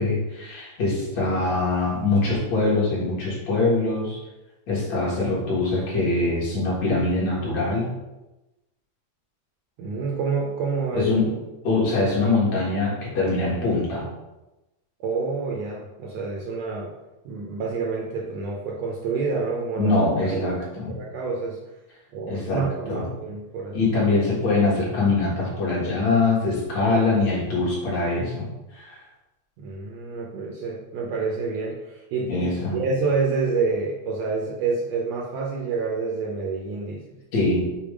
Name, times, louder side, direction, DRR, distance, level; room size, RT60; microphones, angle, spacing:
voice 1, 0.0-4.2 4.7-7.9 10.9-11.4 11.6-14.1 19.8-20.9 22.3-23.1 23.7-29.0 32.3-32.8 37.3-37.6, left 3 dB, 60° left, -6 dB, 2.8 m, -23 dB
voice 2, 9.8-11.0 15.0-16.9 17.2-19.9 20.3-20.5 21.0-21.6 22.1-23.8 29.6-32.5 32.7-37.0, right 4 dB, 75° right, -2 dB, 1.7 m, -28 dB
6.9 x 2.8 x 5.0 m, 1.0 s
omnidirectional pair, 3.7 m